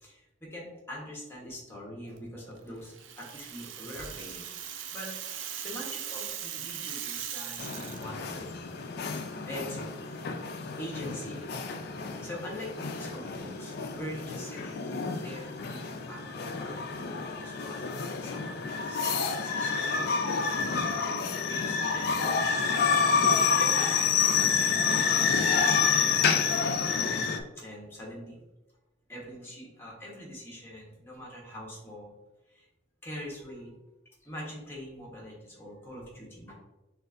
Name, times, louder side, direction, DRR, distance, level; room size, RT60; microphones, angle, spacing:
voice 1, 0.0-4.5 4.9-5.4 5.6-8.5 9.3-10.3 10.8-11.5 12.2-14.8 15.1-20.1 21.2-25.3 25.9-28.4 29.1-32.1 32.5-32.6 33.0-33.7 34.2-36.5, equal, 10° left, -3 dB, 1.2 m, -43 dB
Rattle (instrument), 2.9-8.1, right 9 dB, 75° right, 0.4 m, -39 dB
sound 1, 7.6-27.4, left 5 dB, 55° left, 0.4 m, -28 dB
6.1 x 2.5 x 2.6 m, 1.0 s
head